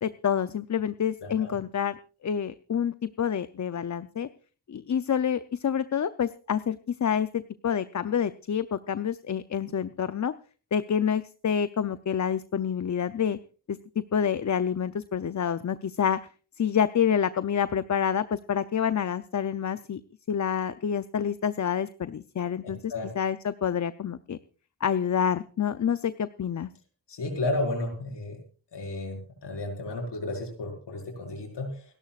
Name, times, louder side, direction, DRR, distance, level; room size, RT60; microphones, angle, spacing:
voice 1, 0.0-2.0 2.2-4.3 4.7-10.3 10.7-13.4 13.7-16.2 16.6-20.0 20.3-24.4 24.8-26.7, left 8 dB, 45° left, 13 dB, 0.6 m, -28 dB
voice 2, 27.1-28.4 28.7-31.8, left 2 dB, 85° left, 2 dB, 5.2 m, -32 dB
29.0 x 12.0 x 2.4 m, 0.37 s
wide cardioid pair, 75°, 40 cm